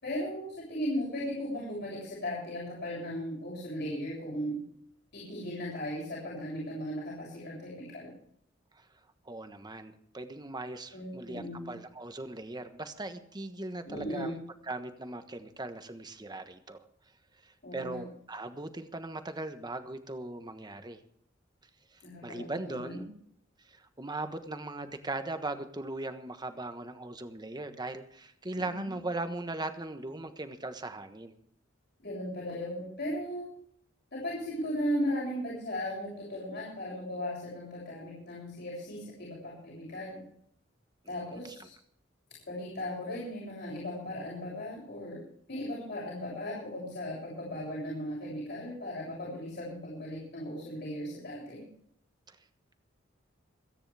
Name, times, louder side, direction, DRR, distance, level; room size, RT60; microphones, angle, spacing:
voice 1, 0.0-4.6 5.1-8.1 10.9-11.7 13.9-14.4 17.6-18.0 22.0-23.0 28.6-29.0 32.0-33.5 34.1-40.2 41.1-41.7 42.5-45.2 45.5-51.6, equal, 60° left, -6 dB, 7.5 m, -37 dB
voice 2, 9.2-14.3 14.6-16.8 17.4-21.0 21.9-23.1 23.6-31.3 41.3-41.7 52.3-52.4, right 2 dB, 20° right, 8 dB, 1.3 m, -39 dB
28.0 x 10.0 x 3.5 m, 0.66 s
head